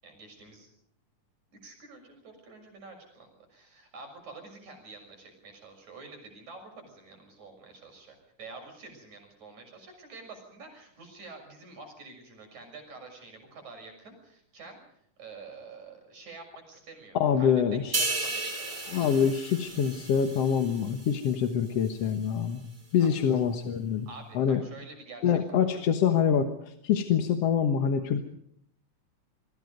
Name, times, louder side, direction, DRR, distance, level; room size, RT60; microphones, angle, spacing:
voice 1, 0.0-0.7 1.6-14.8 15.2-17.5 17.8-18.8 23.0-23.4 24.1-25.6, right 3 dB, 60° right, 4 dB, 7.7 m, -48 dB
voice 2, 17.2-18.0 18.9-22.6 22.9-24.1 24.4-24.6 25.2-28.2, left 8 dB, 55° left, 6 dB, 2.1 m, -25 dB
sound 1, 17.9-21.5 21.8-22.1, right 2 dB, 15° right, 4.3 m, -34 dB
27.0 x 22.5 x 5.3 m, 0.69 s
omnidirectional pair, 3.7 m